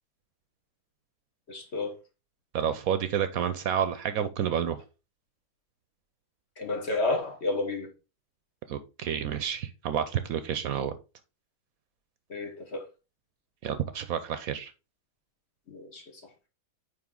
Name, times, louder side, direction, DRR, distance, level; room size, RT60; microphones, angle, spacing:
voice 1, 1.5-2.0 6.6-7.9 12.3-12.9 15.7-16.1, left 2 dB, 45° left, 1.3 m, -31 dB
voice 2, 2.5-4.8 8.7-11.0 13.6-14.7, right 9 dB, 70° right, 1.0 m, -29 dB
8.9 x 3.1 x 3.7 m
omnidirectional pair, 1.7 m